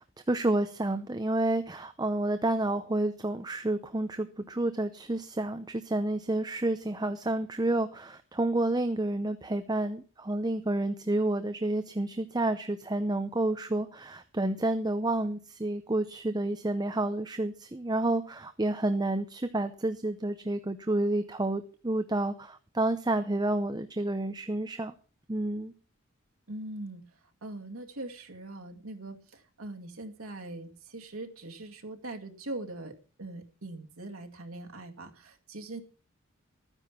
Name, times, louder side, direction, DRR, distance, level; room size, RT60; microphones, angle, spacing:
voice 1, 0.0-24.9 25.3-25.7, right 2 dB, 20° right, 9 dB, 0.7 m, -30 dB
voice 2, 26.5-27.0 27.4-35.8, right 2 dB, 85° right, 3 dB, 2.1 m, -41 dB
14.0 x 9.9 x 5.8 m, 0.38 s
head